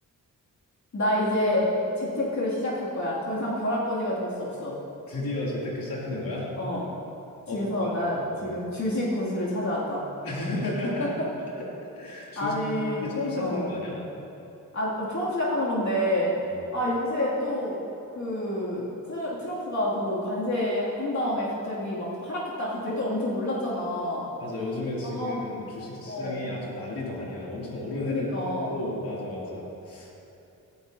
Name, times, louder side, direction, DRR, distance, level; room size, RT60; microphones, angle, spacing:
voice 1, 0.9-1.7 2.0-4.8 6.6-6.8 7.5-10.0 10.8-11.1 12.4-13.7 14.7-16.3 16.7-17.7 18.2-24.3 25.0-25.4 26.0-26.5 28.1-28.8, left 1 dB, 55° left, -7 dB, 2.6 m, -28 dB
voice 2, 5.1-6.5 7.5-8.5 10.2-11.1 12.0-12.5 12.9-14.0 16.5-16.6 24.4-28.3 28.6-30.2, left 2 dB, 85° left, -5 dB, 2.8 m, -33 dB
17.0 x 11.5 x 2.8 m, 2.8 s
wide cardioid pair, 90°, 34 cm